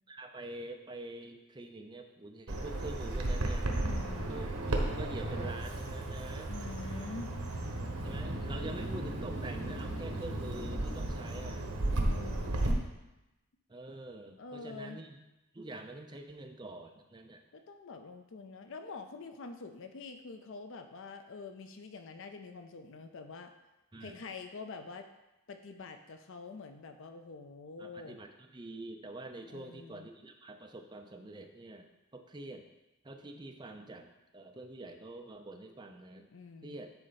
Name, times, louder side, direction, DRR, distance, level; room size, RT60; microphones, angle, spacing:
voice 1, 0.1-3.7 4.3-6.5 8.0-11.7 13.7-15.2 15.5-17.4 23.9-24.2 27.8-32.7 33.0-34.1 34.3-36.3 36.6-36.9, right 2 dB, 20° right, 4 dB, 0.6 m, -46 dB
Bird vocalization bird call bird song, 2.5-12.7, right 1 dB, 80° right, 1.1 m, -34 dB
voice 2, 3.8-4.3 6.5-7.3 12.0-12.7 14.4-15.0 17.5-23.5 24.0-25.1 25.5-28.2 29.5-30.1 36.3-36.8, left 4 dB, 60° left, 7 dB, 0.5 m, -46 dB
9.8 x 4.3 x 4.0 m, 0.98 s
head